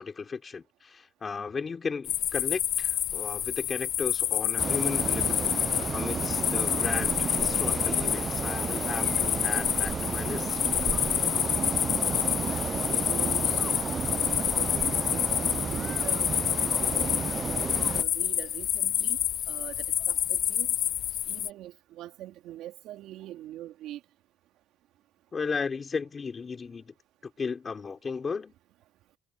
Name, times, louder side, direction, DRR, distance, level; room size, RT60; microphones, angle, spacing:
voice 1, 0.0-10.6 25.3-26.9 27.2-28.5, left 5 dB, 30° left, 4.6 m, -35 dB
sound 1, 2.0-21.5, left 11 dB, 60° left, 0.4 m, -28 dB
sound 2, 4.6-18.0, right 6 dB, 35° right, 0.5 m, -32 dB
voice 2, 12.8-13.8 14.2-16.3 17.7-19.2 19.5-20.7 21.3-24.0, right 13 dB, 80° right, 3.1 m, -43 dB
cardioid pair, 135°, 0 cm